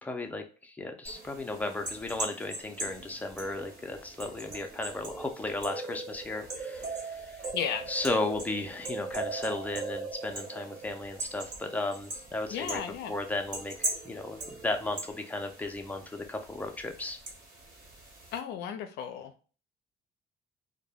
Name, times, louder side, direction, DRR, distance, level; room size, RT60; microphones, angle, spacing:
voice 1, 0.0-7.4 7.9-12.8 13.1-17.2, left 2 dB, 10° left, 4 dB, 0.4 m, -35 dB
sound 1, 1.1-18.4, right 2 dB, 45° right, 1.2 m, -40 dB
voice 2, 7.5-7.9 12.5-13.1 18.3-19.5, left 8 dB, 80° left, 8 dB, 0.4 m, -34 dB
2.1 x 2.1 x 3.4 m, 0.37 s
cardioid pair, 110°, 17 cm